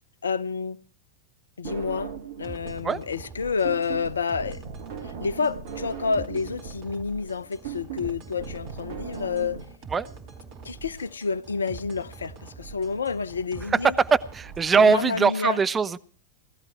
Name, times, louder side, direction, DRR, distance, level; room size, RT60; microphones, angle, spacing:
voice 1, 0.2-0.8 1.6-2.1 2.4-4.6 5.0-9.6 10.6-13.9 14.7-15.6, left 5 dB, 70° left, 0.6 m, -29 dB
sound 1, 1.6-2.9 3.2-9.6, right 6 dB, 55° right, 1.6 m, -38 dB
sound 2, 2.4-15.3, right 5 dB, 40° right, 4.0 m, -44 dB
voice 2, 13.8-16.0, right 5 dB, 20° right, 0.6 m, -21 dB
18.0 x 13.0 x 4.7 m
figure-of-eight pair, 90°, 0 cm